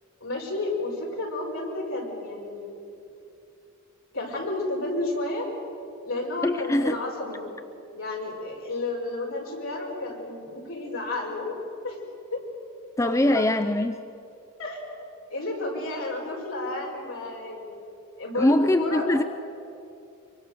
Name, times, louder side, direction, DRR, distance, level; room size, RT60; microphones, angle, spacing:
voice 1, 0.2-2.7 4.1-5.5 6.0-7.5 7.9-11.5 11.8-12.0 12.3-12.4 13.0-13.5 14.6-14.8 15.3-17.7 18.2-19.1, left 2 dB, 65° left, -1 dB, 5.7 m, -31 dB
voice 2, 6.4-7.0 13.0-14.0 18.4-19.2, left 1 dB, 15° left, 8 dB, 0.4 m, -22 dB
24.5 x 24.0 x 6.8 m, 2.6 s
head